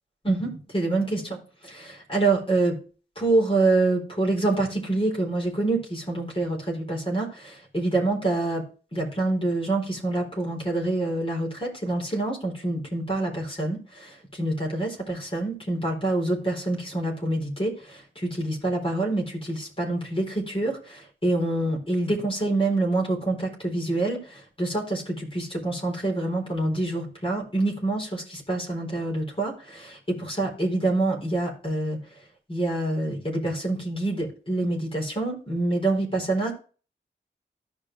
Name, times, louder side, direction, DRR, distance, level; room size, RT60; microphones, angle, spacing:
voice 1, 0.2-1.4 1.6-2.8 3.2-8.6 8.9-32.0 32.5-36.5, right 2 dB, 30° left, -2 dB, 4.0 m, -26 dB
14.0 x 5.2 x 3.4 m, 0.37 s
wide cardioid pair, 100°, 19 cm